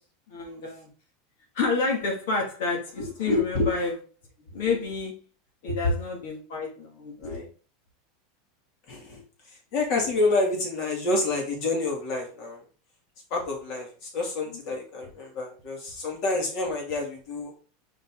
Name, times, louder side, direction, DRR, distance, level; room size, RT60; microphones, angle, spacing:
voice 1, 0.3-0.9 1.5-3.9 4.5-5.2 5.6-7.5, left 3 dB, 70° left, 0 dB, 2.5 m, -29 dB
voice 2, 3.0-3.7 5.7-5.8 7.2-7.4 8.9-12.6 13.3-17.5, left 2 dB, 50° left, 0 dB, 3.0 m, -28 dB
5.7 x 4.9 x 3.9 m, 0.37 s
supercardioid pair, 150°, 0 cm